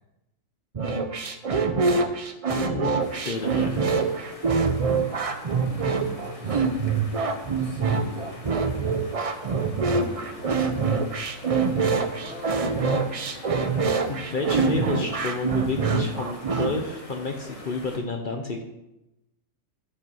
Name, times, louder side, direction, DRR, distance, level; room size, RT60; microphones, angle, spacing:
sound 1, 0.7-16.7, right 4 dB, 40° right, 0.5 m, -25 dB
voice 1, 2.5-3.8 12.6-13.0 14.0-18.6, left 3 dB, 45° left, 4 dB, 0.8 m, -30 dB
sound 2, 3.0-18.0, left 2 dB, 25° left, 1.4 m, -44 dB
voice 2, 5.1-5.6 6.0-8.5 9.3-9.6 10.1-11.0 12.1-12.6, equal, 65° right, -7 dB, 3.5 m, -44 dB
9.8 x 5.5 x 5.5 m, 0.93 s
omnidirectional pair, 1.4 m